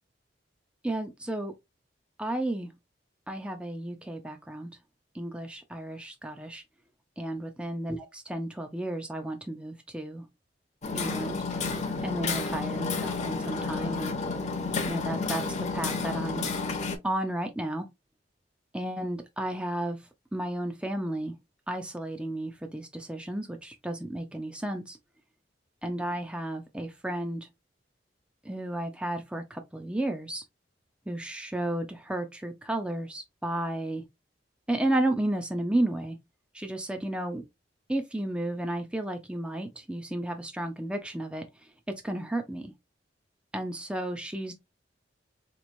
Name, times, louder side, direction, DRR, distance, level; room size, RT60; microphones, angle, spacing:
voice 1, 0.8-1.5 2.2-2.7 3.3-4.7 5.1-6.6 7.2-10.3 10.9-11.4 12.0-14.1 14.8-15.4 15.7-16.5 17.0-17.9 18.7-20.0 20.3-21.4 21.7-25.0 25.8-27.5 28.4-30.4 31.1-34.0 34.7-36.2 36.5-37.4 37.9-41.4 41.9-42.7 43.5-44.5, right 1 dB, 5° right, 0.5 m, -32 dB
Hammer, 10.8-17.0, left 4 dB, 40° left, 0.7 m, -31 dB
4.1 x 3.0 x 2.6 m
head